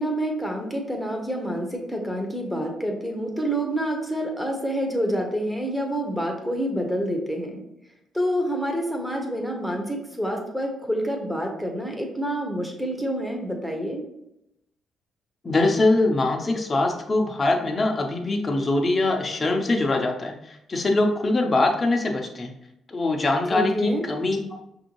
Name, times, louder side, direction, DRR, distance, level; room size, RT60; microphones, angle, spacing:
voice 1, 0.0-7.6 8.1-14.0 23.5-24.0, equal, ahead, 1 dB, 1.0 m, -27 dB
voice 2, 15.4-22.5 22.9-24.6, left 2 dB, 30° left, 3 dB, 0.7 m, -23 dB
5.5 x 2.6 x 3.0 m, 0.82 s
cardioid pair, 90°, 0 cm